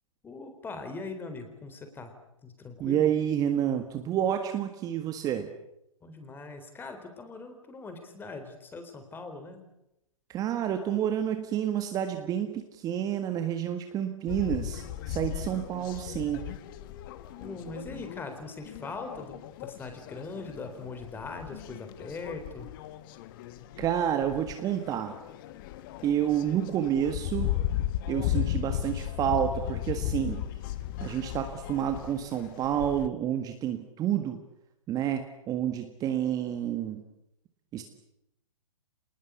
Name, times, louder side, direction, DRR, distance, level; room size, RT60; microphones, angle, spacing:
voice 1, 0.2-2.1 2.4-3.1 6.0-9.6 17.4-22.7, left 3 dB, 10° left, 7 dB, 3.9 m, -41 dB
voice 2, 2.8-5.5 10.3-16.5 23.8-25.1 26.0-27.5 28.1-30.4 31.0-34.4 34.9-37.0 37.7-37.8, right 10 dB, 20° right, 7 dB, 1.7 m, -29 dB
sound 1, 14.3-33.1, left 12 dB, 40° left, 1.6 m, -36 dB
27.0 x 20.0 x 8.4 m, 0.83 s
hypercardioid pair, 135°, 17 cm